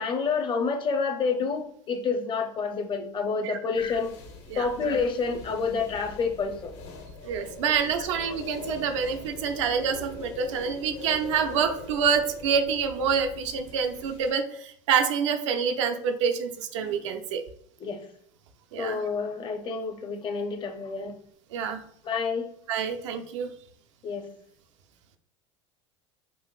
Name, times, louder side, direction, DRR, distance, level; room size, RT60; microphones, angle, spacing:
voice 1, 0.0-4.1 4.6-6.7 17.8-18.0 18.8-21.1 22.0-22.5 24.0-24.3, left 5 dB, 30° left, 6 dB, 0.6 m, -28 dB
sound 1, 3.7-14.3, left 3 dB, 70° left, 0.8 m, -42 dB
voice 2, 7.2-17.4 18.7-19.0 21.5-21.8 22.7-23.5, right 6 dB, 80° right, 6 dB, 0.5 m, -27 dB
3.9 x 2.5 x 2.3 m, 0.63 s
hypercardioid pair, 90°, 15 cm